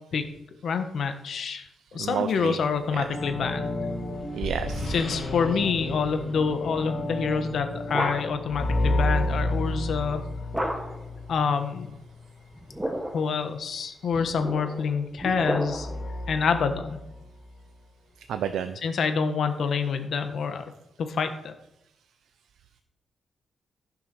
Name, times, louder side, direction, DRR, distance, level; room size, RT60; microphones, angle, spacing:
voice 1, 0.6-3.8 4.9-10.3 11.3-12.0 13.1-15.9 16.3-17.0 18.8-20.6 21.0-21.5, left 5 dB, 55° left, 7 dB, 1.4 m, -27 dB
voice 2, 2.0-2.6 2.9-3.0 4.3-4.9 18.3-18.8, right 8 dB, 85° right, 9 dB, 0.7 m, -30 dB
sound 1, 2.7-12.6 15.6-17.5, left 1 dB, 35° left, 2.7 m, -31 dB
sound 2, 7.4-8.5 10.5-11.1 12.5-13.3 14.1-16.1, equal, 5° right, 1.3 m, -32 dB
14.0 x 7.1 x 6.2 m, 0.84 s
wide cardioid pair, 160°, 0 cm